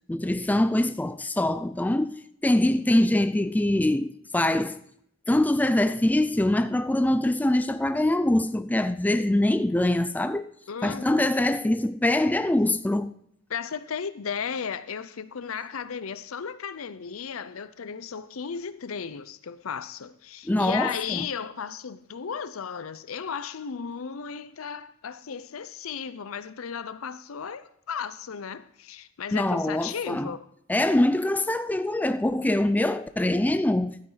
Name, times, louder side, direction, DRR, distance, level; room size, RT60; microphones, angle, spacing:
voice 1, 0.1-4.8 5.3-10.5 10.8-13.1 20.4-21.3 29.3-30.3 30.7-34.0, left 1 dB, 10° left, 0.4 m, -24 dB
voice 2, 10.7-11.3 13.5-30.5, left 6 dB, 85° left, 0.6 m, -35 dB
12.5 x 9.1 x 3.9 m
head